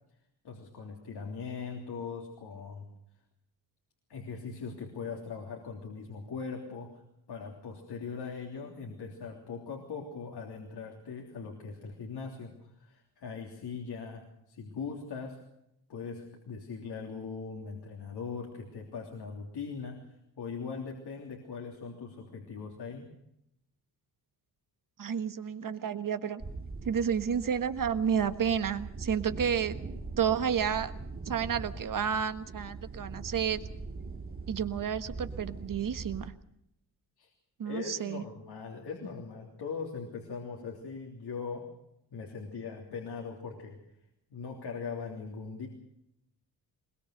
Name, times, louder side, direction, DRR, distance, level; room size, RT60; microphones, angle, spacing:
voice 1, 0.4-2.9 4.1-7.0 7.3-15.4 15.9-20.0 20.4-23.1 37.2-37.3 37.6-41.7 42.1-43.8 44.3-45.7, left 5 dB, 75° left, 0 dB, 3.4 m, -40 dB
voice 2, 25.0-26.4 26.8-29.8 30.2-30.9 31.2-33.6 34.5-36.3 37.6-38.2, right 7 dB, 55° right, 10 dB, 1.4 m, -30 dB
sound 1, 26.4-36.3, right 3 dB, 30° right, 3.3 m, -42 dB
22.0 x 20.5 x 6.6 m, 0.80 s
cardioid pair, 80°, 39 cm